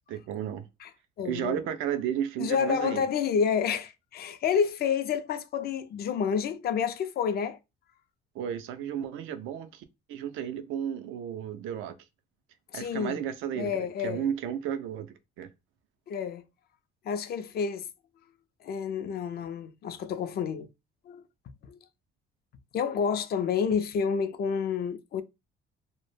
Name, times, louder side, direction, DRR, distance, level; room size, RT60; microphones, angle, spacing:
voice 1, 0.1-0.7 1.2-3.0 8.3-12.0 12.7-15.5, right 9 dB, 80° right, 0.4 m, -33 dB
voice 2, 1.2-1.6 2.4-7.6 12.7-13.2 13.6-14.3 16.1-16.4 17.1-17.9 18.6-20.7 21.1-21.2 21.7-21.8 22.7-25.2, left 7 dB, 50° left, 0.4 m, -29 dB
2.0 x 2.0 x 3.1 m
cardioid pair, 95°, 20 cm